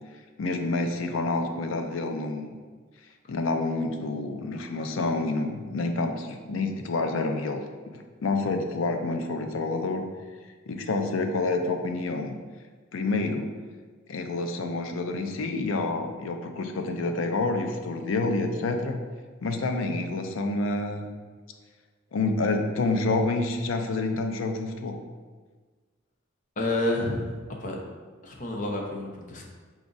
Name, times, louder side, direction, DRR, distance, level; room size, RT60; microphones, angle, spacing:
voice 1, 0.4-2.5 3.3-7.6 7.9-10.1 10.7-12.4 12.9-13.5 14.1-19.0 19.4-21.1 22.1-25.0, left 3 dB, 90° left, 5 dB, 0.5 m, -28 dB
voice 2, 26.6-27.3 27.6-27.8 28.2-29.4, left 2 dB, 40° left, 0 dB, 0.7 m, -29 dB
5.0 x 2.4 x 3.9 m, 1.4 s
head